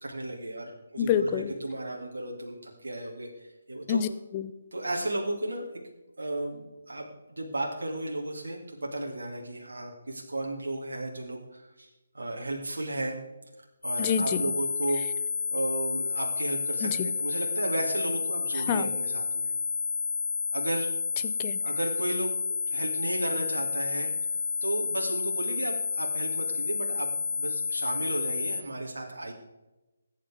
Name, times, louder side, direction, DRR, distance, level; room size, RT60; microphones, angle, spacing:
voice 1, 0.0-4.0 4.7-5.7 6.2-11.9 12.1-13.2 13.8-15.0 15.5-19.5 20.5-20.9 21.6-24.1 24.6-29.3, right 1 dB, 65° right, -1 dB, 2.3 m, -34 dB
voice 2, 1.0-1.5 3.9-4.5 14.0-14.4 16.8-17.1 18.5-18.9 21.2-21.6, left 8 dB, 25° left, 11 dB, 0.7 m, -28 dB
sound 1, 13.8-28.6, left 5 dB, 75° left, 3.5 m, -30 dB
20.0 x 9.2 x 3.5 m, 1.1 s
figure-of-eight pair, 145°, 0 cm